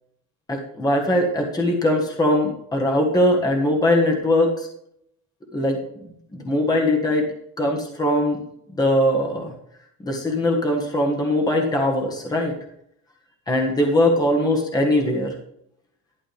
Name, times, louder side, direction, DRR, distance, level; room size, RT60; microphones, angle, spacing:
voice 1, 0.5-4.7 5.5-5.8 6.3-7.3 7.6-8.4 8.7-9.5 10.0-12.5 13.5-15.3, left 1 dB, 15° left, 1 dB, 1.5 m, -21 dB
12.0 x 8.7 x 3.4 m, 0.73 s
cardioid pair, 175°, 29 cm